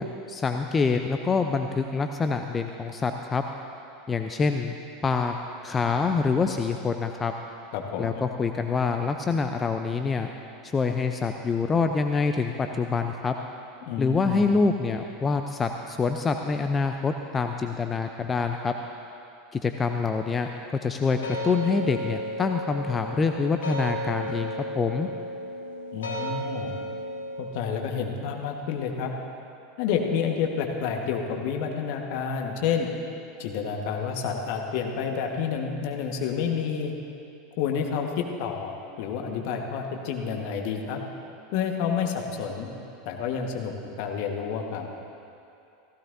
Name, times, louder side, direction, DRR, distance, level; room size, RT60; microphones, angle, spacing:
voice 1, 0.0-3.4 4.1-4.7 5.0-5.3 5.6-7.3 8.0-10.3 10.6-13.3 14.0-18.7 19.5-20.5 20.8-21.2 21.4-25.1, left 4 dB, 25° left, 5 dB, 0.6 m, -26 dB
voice 2, 7.7-8.2 13.9-14.5 25.9-26.7 27.4-29.1 29.8-32.9 33.4-36.9 37.6-41.0 41.5-42.7 43.0-44.9, left 6 dB, 60° left, 2 dB, 1.4 m, -29 dB
sound 1, 21.0-27.5, equal, 80° left, 1.8 m, -34 dB
16.0 x 15.5 x 2.7 m, 2.7 s
figure-of-eight pair, 85°, 0 cm